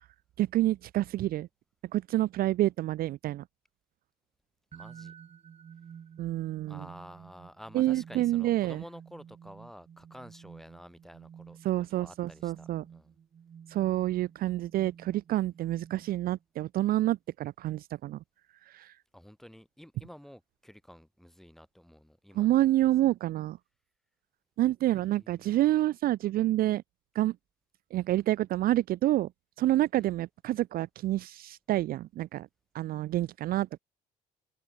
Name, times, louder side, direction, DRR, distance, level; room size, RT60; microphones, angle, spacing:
voice 1, 0.4-1.5 1.9-3.4 6.2-6.8 7.7-8.8 11.6-12.8 13.7-18.2 18.7-18.9 22.4-23.6 24.6-26.8 27.2-27.3 27.9-29.3 29.6-32.5 32.7-33.8, right 14 dB, 60° right, 0.5 m, -28 dB
voice 2, 4.7-5.1 6.7-11.6 11.9-13.1 19.1-22.7 24.8-25.6 29.9-30.2, equal, ahead, 6.8 m, -51 dB
sound 1, 4.7-16.4, right 7 dB, 40° right, 1.5 m, -52 dB
cardioid pair, 110°, 17 cm